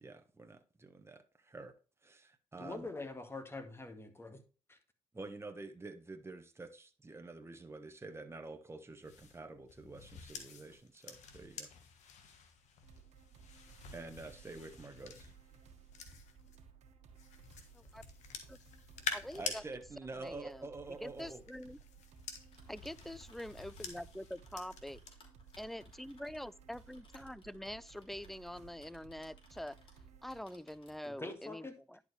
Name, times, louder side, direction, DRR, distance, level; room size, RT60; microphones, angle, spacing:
voice 1, 0.0-1.7 2.0-2.9 5.1-11.7 13.9-15.3 19.3-21.4, right 3 dB, 20° right, 1.3 m, -48 dB
voice 2, 2.6-4.4 4.7-4.8 31.1-31.8, left 2 dB, 20° left, 1.9 m, -44 dB
sound 1, 9.0-16.6 17.2-19.6 20.9-25.1 25.5-25.8, left 6 dB, 80° left, 1.5 m, -47 dB
sound 2, 12.8-30.4, right 6 dB, 70° right, 1.6 m, -59 dB
voice 3, 19.1-19.6 20.2-20.7 21.0-21.8 22.7-25.0 25.6-29.8 30.2-32.0, left 1 dB, ahead, 0.4 m, -45 dB
Typing, 22.4-30.0 30.3-31.1, left 2 dB, 50° left, 3.2 m, -64 dB
10.5 x 4.9 x 3.3 m
supercardioid pair, 55°, 12 cm